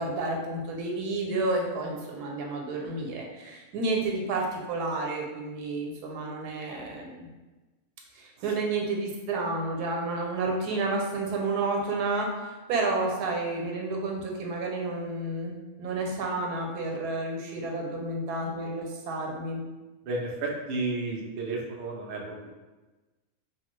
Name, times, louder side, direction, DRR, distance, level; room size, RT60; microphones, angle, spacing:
voice 1, 0.0-7.3 8.1-19.6, right 2 dB, 90° right, 0 dB, 1.2 m, -30 dB
voice 2, 20.0-22.5, right 2 dB, 65° right, -1 dB, 0.5 m, -32 dB
3.1 x 2.3 x 3.1 m, 1.2 s
omnidirectional pair, 1.6 m